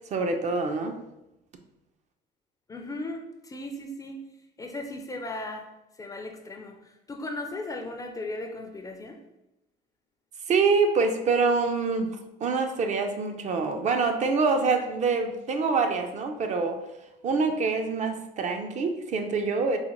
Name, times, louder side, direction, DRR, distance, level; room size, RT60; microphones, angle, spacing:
voice 1, 0.1-1.0 10.5-16.8 17.2-19.8, right 4 dB, 45° right, 5 dB, 0.4 m, -25 dB
voice 2, 2.7-4.3 4.6-5.7 6.0-9.2, left 2 dB, 20° left, 3 dB, 0.4 m, -37 dB
4.0 x 2.1 x 2.9 m, 0.91 s
cardioid pair, 110°, 17 cm